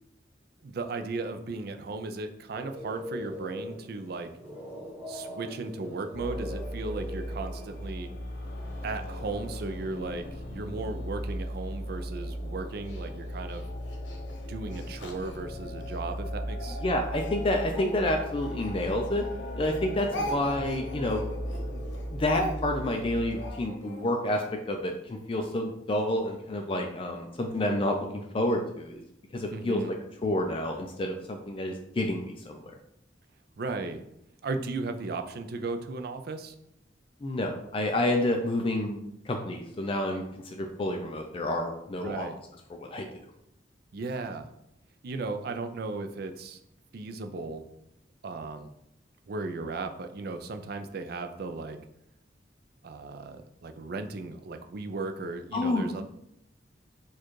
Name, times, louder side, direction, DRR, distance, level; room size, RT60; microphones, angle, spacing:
voice 1, 0.6-4.3 5.1-8.1 8.8-10.3 10.5-13.6 14.4-16.8 29.5-30.0 33.6-34.0 34.4-36.5 42.0-42.4 43.9-44.5 45.0-46.6 46.9-47.6 48.2-48.7 49.3-51.8 52.8-56.0, right 3 dB, 55° right, 7 dB, 0.4 m, -36 dB
sound 1, 2.5-8.0, left 1 dB, 10° right, 1.2 m, -41 dB
sound 2, 6.1-23.5, equal, 50° left, 0.7 m, -37 dB
Speech, 12.9-16.0 16.5-19.4 19.6-24.0, equal, 90° left, 0.8 m, -40 dB
voice 2, 16.8-19.2 19.6-21.2 21.7-21.8 22.1-29.0 29.3-29.8 30.2-32.6 37.2-39.0 39.3-42.3 42.7-43.1 55.5-56.0, left 1 dB, 30° left, 3 dB, 0.4 m, -29 dB
4.6 x 2.4 x 4.5 m, 0.81 s
head